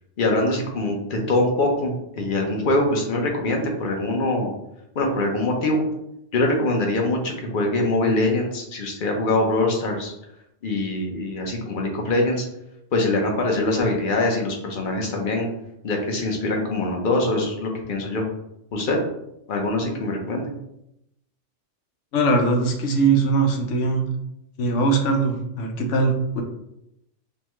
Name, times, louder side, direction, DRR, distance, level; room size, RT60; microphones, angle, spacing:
voice 1, 0.2-4.5 4.9-5.8 6.3-10.1 10.6-12.4 12.9-15.5 15.8-18.3 18.7-19.0 19.5-20.5, left 2 dB, 50° left, 1 dB, 0.9 m, -23 dB
voice 2, 22.1-24.0 24.6-26.4, right 3 dB, 80° left, 2 dB, 1.0 m, -21 dB
5.5 x 2.2 x 3.0 m, 0.81 s
omnidirectional pair, 1.3 m